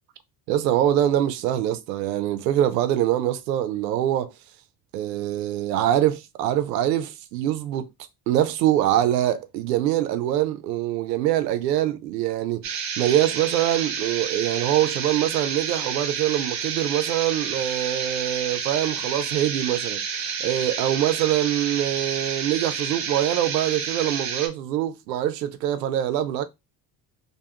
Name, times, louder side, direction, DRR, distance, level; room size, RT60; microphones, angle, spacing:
voice 1, 0.5-4.3 4.9-7.9 8.3-26.4, right 12 dB, 85° right, 0.6 m, -24 dB
sound 1, 12.6-24.5, right 6 dB, 35° right, 0.7 m, -30 dB
2.6 x 2.3 x 2.8 m
hypercardioid pair, 65°, 48 cm